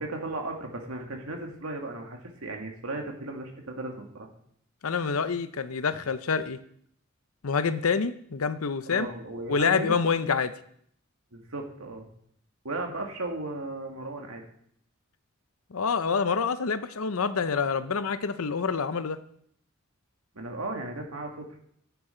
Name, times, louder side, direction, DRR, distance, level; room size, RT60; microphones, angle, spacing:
voice 1, 0.0-4.3 8.9-10.0 11.3-12.1 12.6-14.4 20.4-21.6, right 2 dB, 85° right, 2 dB, 2.0 m, -36 dB
voice 2, 4.8-6.6 7.4-9.1 9.5-10.5 15.7-19.2, left 5 dB, 85° left, 12 dB, 0.7 m, -27 dB
11.0 x 9.4 x 4.4 m, 0.66 s
head